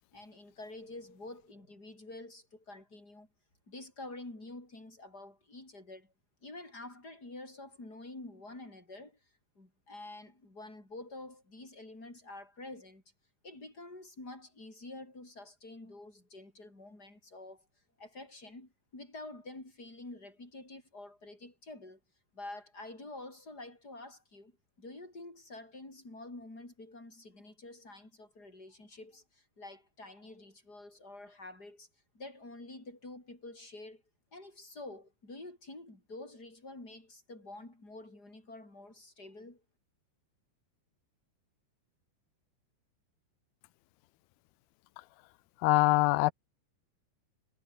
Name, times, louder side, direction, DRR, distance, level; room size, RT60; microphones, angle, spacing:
voice 1, 0.1-3.3 3.7-6.1 6.4-9.2 9.5-13.0 13.4-17.7 18.0-22.0 22.3-31.9 32.1-34.0 34.3-39.6, left 2 dB, 20° left, 8.5 m, -48 dB
voice 2, 45.6-46.3, left 21 dB, 90° left, 2.1 m, -23 dB
omnidirectional pair, 5.1 m